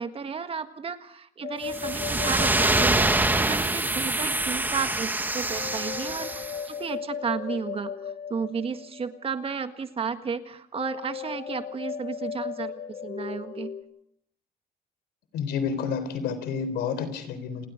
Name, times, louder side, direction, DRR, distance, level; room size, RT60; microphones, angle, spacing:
voice 1, 0.0-7.9 8.3-13.7, right 6 dB, 35° right, 9 dB, 1.6 m, -33 dB
sound 1, 1.4-4.1 5.5-9.4 10.7-13.8, left 7 dB, 50° left, 2.7 m, -37 dB
sound 2, 1.7-6.6, right 2 dB, 10° right, 1.5 m, -25 dB
voice 2, 15.3-17.7, left 6 dB, 75° left, 12 dB, 3.9 m, -29 dB
29.5 x 20.5 x 5.1 m, 0.69 s
cardioid pair, 110°, 17 cm